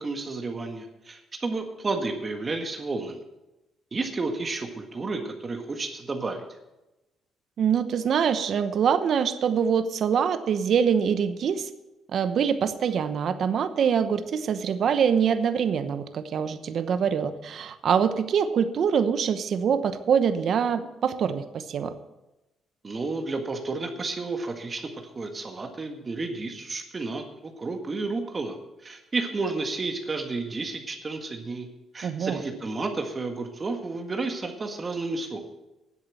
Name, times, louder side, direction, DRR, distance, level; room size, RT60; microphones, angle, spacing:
voice 1, 0.0-3.2 3.9-6.4 22.8-24.9 25.1-28.6 28.8-31.7 31.9-35.4, right 3 dB, 30° right, 4 dB, 1.6 m, -31 dB
voice 2, 7.6-11.7 12.1-21.9 32.0-32.4, right 7 dB, 60° right, 10 dB, 0.9 m, -24 dB
10.5 x 8.1 x 7.7 m, 0.97 s
cardioid pair, 90°, 0 cm